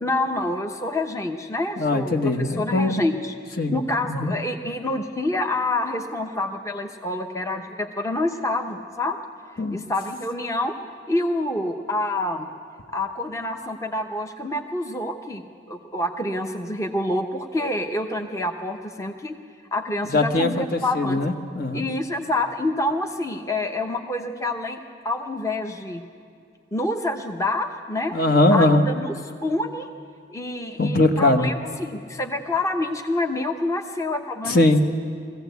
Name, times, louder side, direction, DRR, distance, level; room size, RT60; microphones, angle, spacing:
voice 1, 0.0-3.3 3.7-9.2 9.7-10.8 11.1-12.5 12.9-15.4 15.7-19.4 19.7-21.2 21.7-24.8 25.0-26.0 26.7-28.2 28.5-29.1 29.4-29.9 30.3-34.7, left 2 dB, 15° left, 4 dB, 0.8 m, -27 dB
voice 2, 1.8-2.9 3.6-3.8 4.1-4.3 9.6-9.8 20.1-21.8 28.1-28.9 30.8-31.5 34.5-34.8, left 2 dB, 55° left, 6 dB, 1.1 m, -20 dB
21.5 x 15.5 x 8.1 m, 2.3 s
head